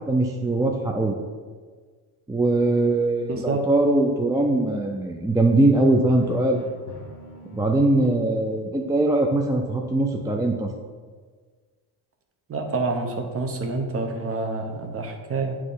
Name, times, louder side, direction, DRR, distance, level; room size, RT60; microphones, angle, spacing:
voice 1, 0.1-1.2 2.3-6.6 7.5-10.7, right 2 dB, 10° right, 2 dB, 0.3 m, -21 dB
voice 2, 3.3-3.6 12.5-15.6, right 3 dB, 35° right, 3 dB, 0.9 m, -27 dB
Drum, 6.2-8.2, left 4 dB, 50° left, 1.6 m, -41 dB
8.2 x 3.0 x 3.9 m, 1.5 s
cardioid pair, 100°, 40 cm